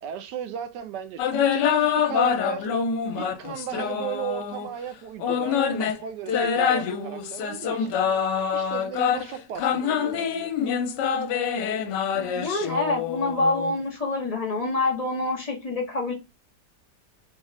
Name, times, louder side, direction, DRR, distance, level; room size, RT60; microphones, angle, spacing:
voice 1, 0.0-2.7 3.1-8.0 8.5-10.5, right 9 dB, 75° right, 1.2 m, -36 dB
sound 1, 1.2-4.7 5.2-13.7, left 7 dB, 75° left, 1.2 m, -25 dB
voice 2, 12.0-16.1, left 2 dB, 25° left, 1.2 m, -27 dB
4.0 x 2.4 x 3.0 m
omnidirectional pair, 2.0 m